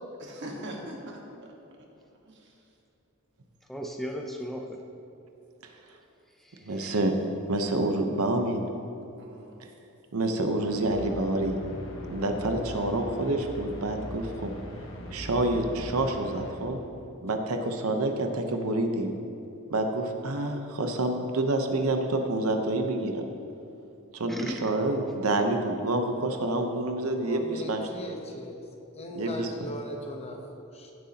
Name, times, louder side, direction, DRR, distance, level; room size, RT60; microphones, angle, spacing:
voice 1, 0.2-1.5 2.3-2.5 9.2-9.5 12.6-12.7, right 1 dB, 55° right, -1 dB, 1.5 m, -41 dB
voice 2, 3.7-4.8 6.4-7.0 24.3-24.7, equal, ahead, 1 dB, 0.5 m, -36 dB
voice 3, 6.7-7.1 7.5-8.6 10.1-11.6 12.1-14.5 15.1-16.8 17.2-19.1 19.7-23.3 24.1-27.8 29.2-29.7, right 2 dB, 85° right, 5 dB, 0.9 m, -28 dB
sound 1, 10.6-16.6, equal, 65° left, 1.3 m, -40 dB
voice 4, 27.1-28.6 28.9-30.9, equal, 30° left, 2 dB, 0.9 m, -39 dB
15.5 x 7.9 x 2.9 m, 2.8 s
head